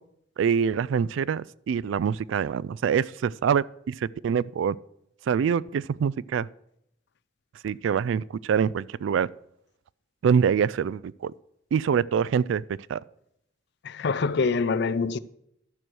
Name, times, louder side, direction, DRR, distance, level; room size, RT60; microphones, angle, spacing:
voice 1, 0.4-4.0 4.2-4.8 5.3-6.5 7.6-9.3 10.2-11.3 11.7-12.6 12.9-13.0, right 7 dB, 75° right, 0.3 m, -25 dB
voice 2, 13.8-15.2, left 4 dB, 60° left, 0.5 m, -25 dB
12.0 x 6.2 x 6.2 m
head